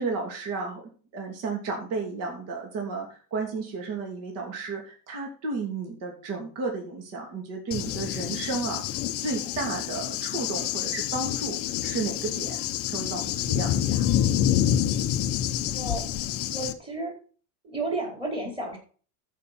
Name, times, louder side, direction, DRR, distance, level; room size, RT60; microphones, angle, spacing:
voice 1, 0.0-8.8 9.2-12.6 12.9-14.1, right 3 dB, 40° right, 0 dB, 3.1 m, -33 dB
Cricket / Thunder, 7.7-16.7, left 11 dB, 30° left, 0.7 m, -27 dB
voice 2, 15.7-17.2 17.6-18.8, right 2 dB, 10° right, 0 dB, 4.1 m, -33 dB
14.0 x 5.8 x 4.3 m, 0.40 s
supercardioid pair, 155°, 46 cm